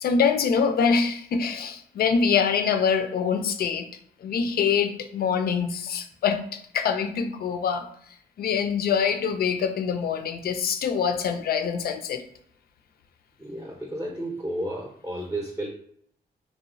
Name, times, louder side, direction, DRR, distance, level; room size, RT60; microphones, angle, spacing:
voice 1, 0.0-3.9 4.2-7.9 8.4-12.2, left 6 dB, 65° left, 7 dB, 0.4 m, -24 dB
voice 2, 13.4-15.7, right 1 dB, 10° right, -1 dB, 0.6 m, -32 dB
3.0 x 2.1 x 2.5 m, 0.65 s
cardioid pair, 60°, 17 cm